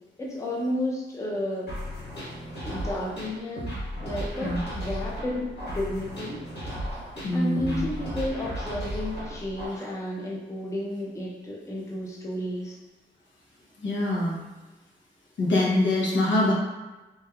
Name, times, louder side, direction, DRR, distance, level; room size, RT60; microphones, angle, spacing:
voice 1, 0.2-1.7 2.6-3.7 4.0-6.4 7.3-12.8, left 1 dB, 15° left, -4 dB, 0.5 m, -32 dB
sound 1, 1.7-9.7, equal, 65° left, 1.3 m, -35 dB
voice 2, 7.2-7.8 13.8-14.4 15.4-16.5, left 1 dB, 80° left, -4 dB, 0.8 m, -24 dB
3.1 x 3.1 x 2.3 m, 1.1 s
wide cardioid pair, 160°, 19 cm